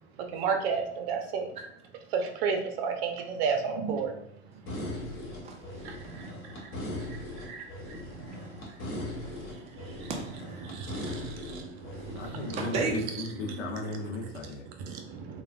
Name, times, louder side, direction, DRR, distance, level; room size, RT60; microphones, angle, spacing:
voice 1, 0.3-1.5 2.1-4.2 5.2-6.7 7.1-8.0 9.8-10.1 10.6-12.8 13.4-13.8 14.8-15.4, right 5 dB, 55° right, 5 dB, 0.7 m, -33 dB
sound 1, 4.7-12.8, left 1 dB, 35° left, 1.3 m, -39 dB
voice 2, 5.4-7.6 7.9-11.4 11.8-12.2 12.6-13.0, right 4 dB, 20° right, 1 dB, 0.5 m, -40 dB
voice 3, 12.1-14.6, left 3 dB, 80° left, 0 dB, 0.8 m, -36 dB
3.2 x 2.3 x 2.4 m, 0.71 s
hypercardioid pair, 110°, 36 cm